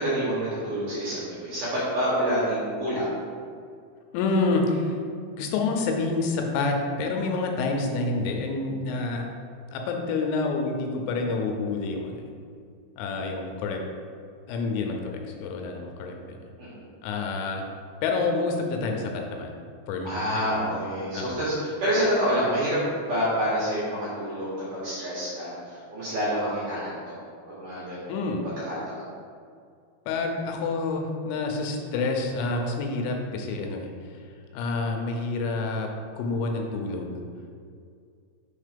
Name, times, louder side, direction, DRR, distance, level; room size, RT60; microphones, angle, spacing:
voice 1, 0.0-3.1 16.6-16.8 20.0-22.8 23.1-27.1 27.5-29.0, equal, 60° right, -10 dB, 2.2 m, -28 dB
voice 2, 4.1-5.0 5.4-9.3 9.7-12.2 13.0-13.8 14.5-16.4 17.0-17.6 18.0-19.6 19.9-20.4 21.1-21.4 28.1-28.4 30.1-33.9 34.5-35.9 36.2-37.1, left 3 dB, 80° left, 2 dB, 2.9 m, -28 dB
6.5 x 3.7 x 5.1 m, 2.3 s
omnidirectional pair, 5.5 m